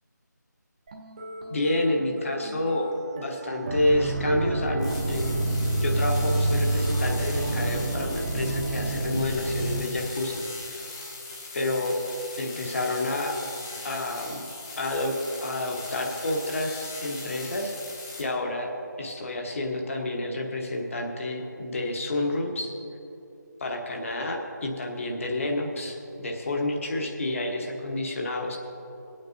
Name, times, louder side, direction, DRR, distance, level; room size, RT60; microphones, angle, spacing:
sound 1, 0.9-8.9, right 1 dB, 25° right, 0.7 m, -39 dB
voice 1, 1.5-2.9 3.1-5.4 5.8-10.8 11.5-12.0 12.4-13.3 13.8-14.4 14.8-15.1 15.4-17.7 18.2-22.7 23.6-26.0 26.2-28.6, left 1 dB, 45° left, 2 dB, 1.2 m, -29 dB
sound 2, 3.6-9.8, right 2 dB, 50° right, 0.9 m, -27 dB
sound 3, 4.8-18.2, left 3 dB, 15° left, 0.7 m, -40 dB
20.5 x 8.8 x 2.7 m, 2.8 s
figure-of-eight pair, 165°, 10 cm